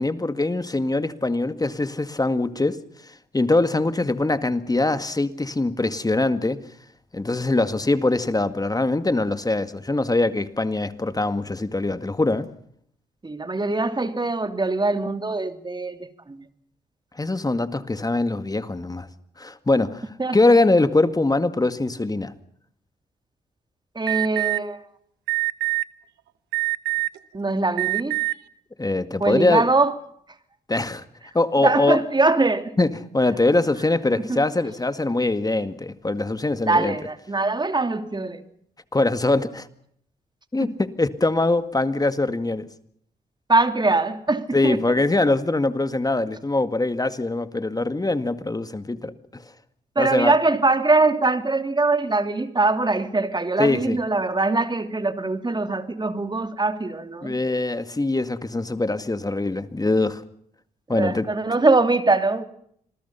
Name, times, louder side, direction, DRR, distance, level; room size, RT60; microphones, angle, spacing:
voice 1, 0.0-2.8 3.3-6.6 7.1-12.5 17.2-19.1 19.4-22.3 28.8-29.7 30.7-31.0 31.3-32.0 32.8-37.0 38.9-39.7 40.5-42.7 44.5-49.4 50.0-50.3 53.6-54.0 57.2-60.2 60.9-61.3, left 2 dB, 20° left, 2.0 m, -22 dB
voice 2, 13.2-16.4 20.2-20.4 23.9-24.8 27.3-28.2 29.2-29.9 31.6-32.7 34.1-34.4 36.7-38.4 40.6-40.7 43.5-44.8 49.9-57.4 60.9-62.4, right 3 dB, 25° right, 2.9 m, -22 dB
Alarm, 24.1-24.6 25.3-25.8 26.5-27.2 27.7-28.3, right 26 dB, 90° right, 1.0 m, -24 dB
27.0 x 21.0 x 5.7 m
supercardioid pair, 50°, 17 cm